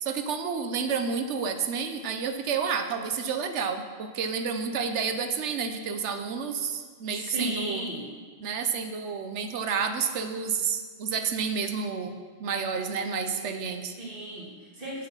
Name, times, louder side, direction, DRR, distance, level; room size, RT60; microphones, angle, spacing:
voice 1, 0.0-7.8 8.4-13.9, right 6 dB, 85° right, 7 dB, 1.1 m, -30 dB
voice 2, 7.1-8.0 14.0-15.1, right 1 dB, 50° right, -5 dB, 2.7 m, -35 dB
9.7 x 7.6 x 5.6 m, 1.5 s
omnidirectional pair, 1.2 m